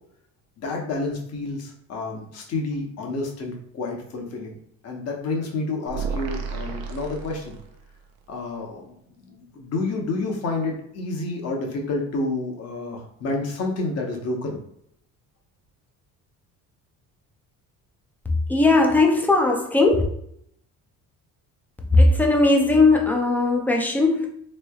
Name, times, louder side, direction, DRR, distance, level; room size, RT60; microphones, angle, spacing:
voice 1, 0.6-4.6 4.8-7.5 8.3-14.5, left 3 dB, 45° left, 0.9 m, -29 dB
sound 1, 5.9-8.0, right 5 dB, 75° right, 0.7 m, -32 dB
voice 2, 18.3-20.0 21.9-24.3, left 2 dB, 5° left, 0.3 m, -18 dB
3.7 x 3.2 x 2.3 m
cardioid pair, 155°, 35 cm